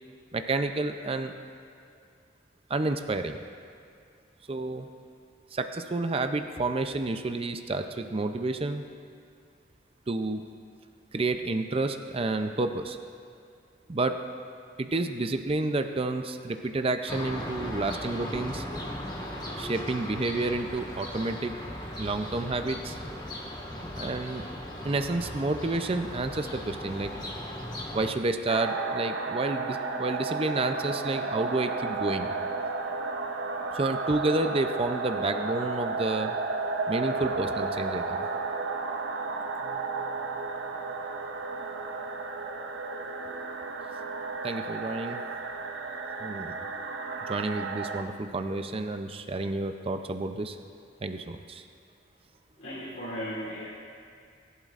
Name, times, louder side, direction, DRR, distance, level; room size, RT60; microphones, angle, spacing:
voice 1, 0.3-1.3 2.7-3.4 4.5-4.9 5.5-8.9 10.1-10.4 11.1-13.0 13.9-14.2 14.8-18.6 19.6-21.5 22.0-23.0 24.0-24.5 24.8-27.2 27.9-32.3 33.7-36.4 36.9-38.2 44.4-45.2 46.2-46.5 47.3-50.6 51.0-51.6, right 2 dB, 30° right, 7 dB, 0.5 m, -30 dB
sound 1, 17.1-28.1, left 1 dB, 25° left, 1.4 m, -38 dB
sound 2, 28.5-48.0, right 3 dB, 75° right, 0.8 m, -33 dB
voice 2, 52.6-53.7, equal, 60° left, -10 dB, 2.7 m, -36 dB
20.0 x 11.0 x 2.5 m, 2.4 s
head